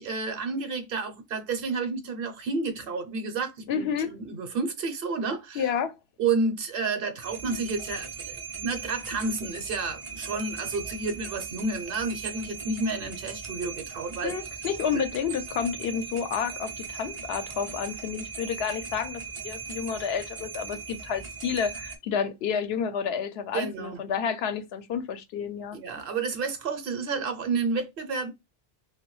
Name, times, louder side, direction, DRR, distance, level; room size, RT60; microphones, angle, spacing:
voice 1, 0.0-5.7 6.2-14.3 14.9-15.0 23.5-24.0 25.7-28.3, right 4 dB, 65° right, 0.8 m, -30 dB
voice 2, 3.7-4.1 5.5-5.9 14.2-25.8, left 7 dB, 75° left, 0.8 m, -30 dB
sound 1, 7.2-22.0, right 5 dB, 40° right, 0.5 m, -39 dB
2.9 x 2.2 x 3.0 m
omnidirectional pair, 1.1 m